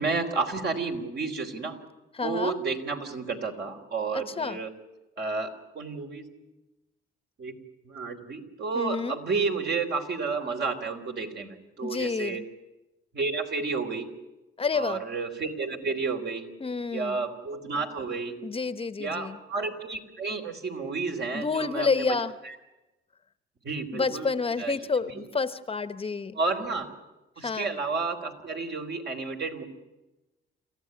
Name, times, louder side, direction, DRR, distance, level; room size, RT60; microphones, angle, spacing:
voice 1, 0.0-1.8 2.2-4.7 5.2-6.3 7.4-7.5 7.9-12.4 13.1-14.1 14.7-16.5 16.9-18.3 19.0-22.1 23.6-24.3 24.6-24.8 25.2-25.3 26.4-26.9 27.4-29.6, right 4 dB, 55° right, 3 dB, 3.6 m, -31 dB
voice 2, 2.1-2.6 4.1-4.7 8.7-9.2 11.8-12.5 14.6-15.0 16.6-17.3 18.4-19.4 21.3-22.4 23.9-26.4 27.4-27.7, left 4 dB, 30° left, 13 dB, 0.9 m, -29 dB
27.5 x 15.0 x 9.6 m, 1.1 s
cardioid pair, 90°, 20 cm